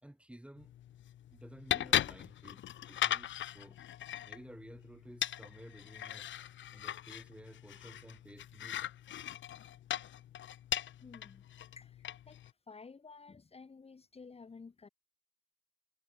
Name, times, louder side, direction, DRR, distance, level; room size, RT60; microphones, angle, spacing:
voice 1, 0.0-0.7 1.3-2.6 2.9-3.8 4.2-6.3 6.7-8.8, right 1 dB, 5° right, 5.1 m, -54 dB
sound 1, 0.6-12.5, left 11 dB, 70° left, 2.7 m, -39 dB
voice 2, 11.0-11.4 11.7-12.4 12.7-14.9, left 4 dB, 30° left, 2.8 m, -53 dB
cardioid pair, 90°, 20 cm